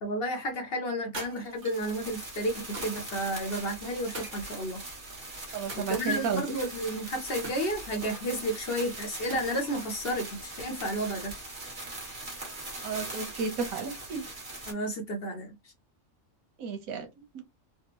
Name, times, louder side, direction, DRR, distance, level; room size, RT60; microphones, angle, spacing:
voice 1, 0.0-4.8 5.8-11.3 14.7-15.5, equal, 50° left, 0.8 m, -32 dB
sound 1, 1.1-1.9 2.7-3.2 4.1-5.0 5.7-6.4 7.4-8.3 9.3-9.8, right 2 dB, 60° right, 1.4 m, -43 dB
sound 2, 1.6-14.7, right 2 dB, 40° right, 1.3 m, -41 dB
voice 2, 5.5-6.4 12.8-14.3 16.6-17.1 17.3-17.4, right 5 dB, 85° right, 1.2 m, -32 dB
3.5 x 2.1 x 2.9 m
omnidirectional pair, 1.4 m